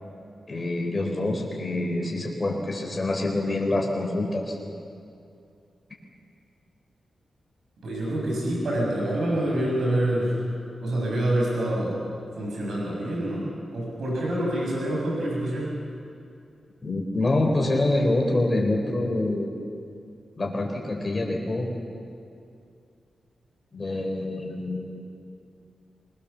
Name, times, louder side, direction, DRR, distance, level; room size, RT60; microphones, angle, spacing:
voice 1, 0.5-4.6 16.8-19.5 20.4-21.7 23.7-24.9, left 2 dB, 20° left, 0 dB, 4.1 m, -26 dB
voice 2, 7.8-10.4 10.8-12.0 12.4-15.7, right 1 dB, 70° right, -3 dB, 7.2 m, -26 dB
26.0 x 21.5 x 7.1 m, 2.5 s
wide cardioid pair, 175°, 0 cm